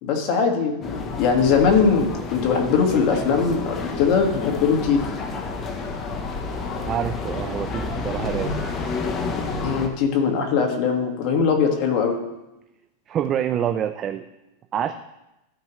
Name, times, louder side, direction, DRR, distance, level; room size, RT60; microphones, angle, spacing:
voice 1, 0.0-5.1 9.3-12.2, left 5 dB, 45° left, 2 dB, 1.7 m, -21 dB
sound 1, 0.8-9.9, left 3 dB, 25° left, 0.9 m, -30 dB
voice 2, 6.8-8.6 13.1-14.3 14.7-14.9, right 9 dB, 25° right, 8 dB, 0.4 m, -26 dB
13.5 x 4.7 x 3.1 m, 0.93 s
supercardioid pair, 145°, 0 cm